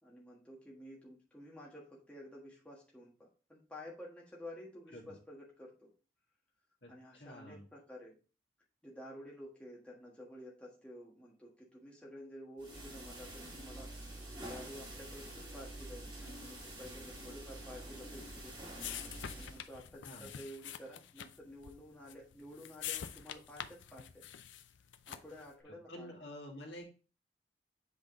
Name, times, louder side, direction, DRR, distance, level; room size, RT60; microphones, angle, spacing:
voice 1, 0.0-5.9 6.9-8.1 8.8-13.9 14.4-18.7 19.4-24.2 25.1-26.1, left 1 dB, 5° left, -4 dB, 1.4 m, -51 dB
voice 2, 6.8-7.7 20.0-20.3 25.7-26.9, left 1 dB, 70° left, -1 dB, 2.1 m, -49 dB
sound 1, 12.6-19.6, right 1 dB, 25° right, 2.3 m, -47 dB
sound 2, 18.0-25.5, left 9 dB, 90° left, 0.5 m, -47 dB
7.7 x 3.8 x 3.7 m, 0.35 s
head